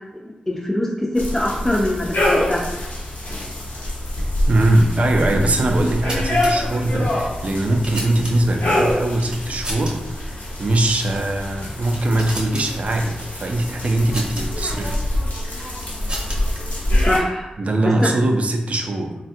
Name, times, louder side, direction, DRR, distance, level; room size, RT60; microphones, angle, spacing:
voice 1, 0.2-2.6 17.0-17.5 18.0-18.1, left 1 dB, 10° left, -3 dB, 0.4 m, -23 dB
sound 1, 1.2-17.2, left 1 dB, 85° left, 0.8 m, -25 dB
voice 2, 4.5-10.3 10.6-15.0 17.6-19.2, right 1 dB, 50° right, 3 dB, 0.4 m, -21 dB
sound 2, 5.7-6.5 7.4-8.6 9.2-9.9 10.2-10.3 11.0-11.3 11.7-12.7 13.8-14.4 15.4-16.6, equal, 35° right, 0.8 m, -33 dB
3.4 x 2.2 x 2.6 m, 0.99 s
wide cardioid pair, 90°, 3 cm